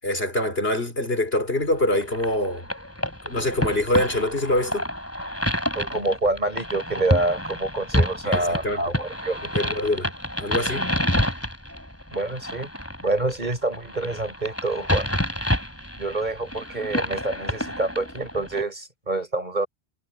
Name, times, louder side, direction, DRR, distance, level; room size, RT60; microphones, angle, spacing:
voice 1, 0.0-2.6 3.2-4.9 8.2-8.9 9.5-10.1 10.4-10.9, left 1 dB, 70° left, 5.0 m, -24 dB
sound 1, 1.9-18.6, equal, 15° left, 5.6 m, -28 dB
voice 2, 5.7-9.4 12.1-12.7 13.0-15.1 16.0-19.7, right 2 dB, 45° right, 5.8 m, -27 dB
omnidirectional pair, 1.1 m